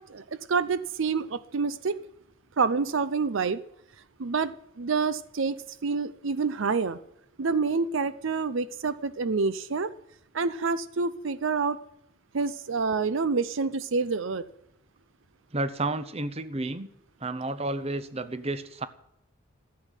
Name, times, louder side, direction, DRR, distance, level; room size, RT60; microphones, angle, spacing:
voice 1, 0.1-2.0 2.6-3.6 4.2-7.0 7.4-9.9 10.3-11.8 12.3-14.4, right 4 dB, 60° right, 14 dB, 0.5 m, -27 dB
voice 2, 15.5-16.9 17.2-18.9, right 2 dB, 30° right, 12 dB, 0.7 m, -31 dB
14.0 x 8.2 x 9.2 m, 0.79 s
head